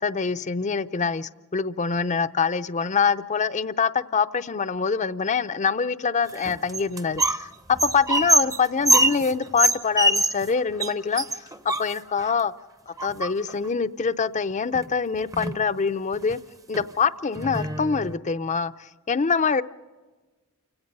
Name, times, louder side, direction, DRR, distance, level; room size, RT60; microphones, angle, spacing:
voice 1, 0.0-7.5 7.8-12.5 12.9-16.4 16.7-18.7 19.1-19.6, left 5 dB, 35° left, 13 dB, 0.5 m, -25 dB
sound 1, 6.3-7.4 7.7-10.5 10.8-10.9 11.2-12.3 13.0-13.6 14.7-14.8 15.1-15.6 16.1-16.3 16.7-16.8 17.3-18.2, right 1 dB, 15° right, 0.7 m, -24 dB
30.0 x 17.0 x 5.4 m, 1.3 s
head